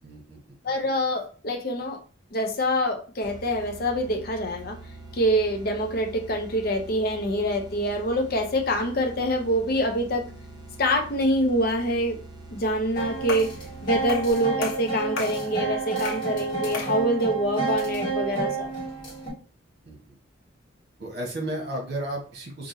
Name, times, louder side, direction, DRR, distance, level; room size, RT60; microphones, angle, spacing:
voice 1, 0.0-0.6 19.8-20.2 21.0-22.7, right 1 dB, 55° right, 0 dB, 1.2 m, -34 dB
voice 2, 0.6-2.0 2.3-4.8 5.1-10.3 10.8-12.2 12.5-13.5 13.8-18.7, equal, 50° left, 5 dB, 0.6 m, -25 dB
sound 1, 3.2-14.6, right 2 dB, 20° right, 0.7 m, -44 dB
sound 2, 13.0-19.3, right 4 dB, 25° left, 1.7 m, -30 dB
sound 3, 13.3-13.6 14.1-14.3 14.6-15.4 16.0-16.3 16.7-17.0, left 4 dB, 85° left, 0.8 m, -34 dB
4.9 x 2.6 x 2.7 m, 0.39 s
head